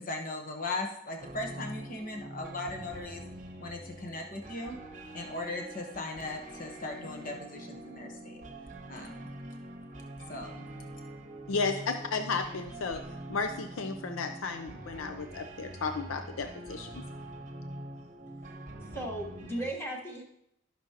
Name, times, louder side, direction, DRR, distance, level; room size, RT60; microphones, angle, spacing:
voice 1, 0.0-3.2 3.6-4.8 5.1-8.4 8.9-9.2 10.3-10.7, left 2 dB, 40° left, 2 dB, 1.1 m, -38 dB
sound 1, 1.2-19.7, right 1 dB, 40° right, 1.1 m, -45 dB
voice 2, 11.5-13.0 13.3-16.9, left 4 dB, 80° left, 7 dB, 0.6 m, -33 dB
voice 3, 18.8-20.2, right 1 dB, 10° left, 0 dB, 1.3 m, -36 dB
14.5 x 6.1 x 2.9 m, 0.79 s
head